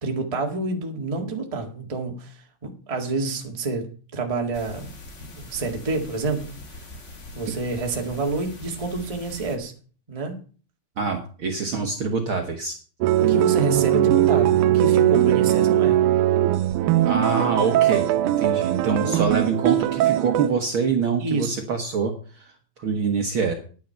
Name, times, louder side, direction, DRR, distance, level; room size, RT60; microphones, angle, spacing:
voice 1, 0.0-3.9 4.1-4.9 5.2-6.6 7.3-9.7 10.1-10.4 13.2-16.0 19.0-19.2 21.2-21.6, right 3 dB, 15° right, 2 dB, 1.2 m, -28 dB
sound 1, 4.5-9.6, left 2 dB, 35° left, 1.3 m, -42 dB
voice 2, 11.0-12.8 15.4-15.5 17.0-22.5 22.8-23.5, right 5 dB, 55° right, 4 dB, 1.6 m, -25 dB
sound 2, 13.0-20.5, right 13 dB, 90° right, 2.2 m, -20 dB
10.5 x 9.4 x 5.6 m, 0.40 s
omnidirectional pair, 3.4 m